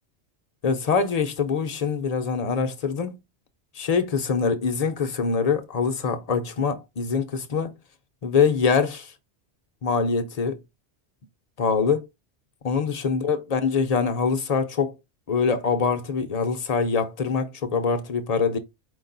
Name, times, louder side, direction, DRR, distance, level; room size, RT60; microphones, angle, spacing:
voice 1, 0.6-3.2 3.8-7.7 8.2-9.1 9.8-10.6 11.6-12.1 12.6-15.0 15.3-18.6, left 5 dB, 40° left, 0.6 m, -24 dB
5.0 x 2.3 x 3.8 m
omnidirectional pair, 1.2 m